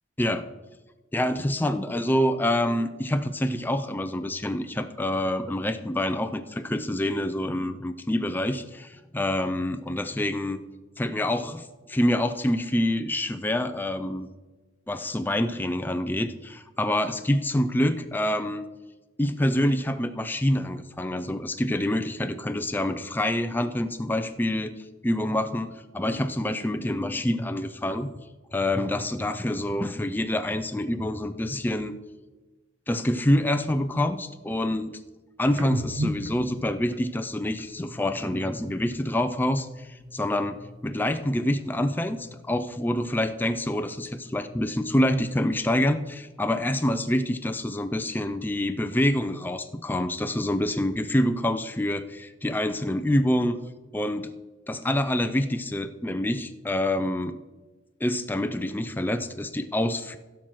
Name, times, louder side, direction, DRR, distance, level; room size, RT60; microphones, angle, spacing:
voice 1, 1.1-10.6 11.0-14.3 14.9-18.7 19.2-28.1 28.5-32.0 32.9-34.9 35.4-53.6 53.9-54.3 54.7-57.4 58.0-60.2, left 1 dB, 10° left, 8 dB, 0.4 m, -26 dB
sound 1, 35.5-39.1 39.4-41.3 41.5-43.4 43.8-45.6, equal, 75° right, 1.1 m, -39 dB
16.0 x 5.9 x 4.6 m, 1.2 s
head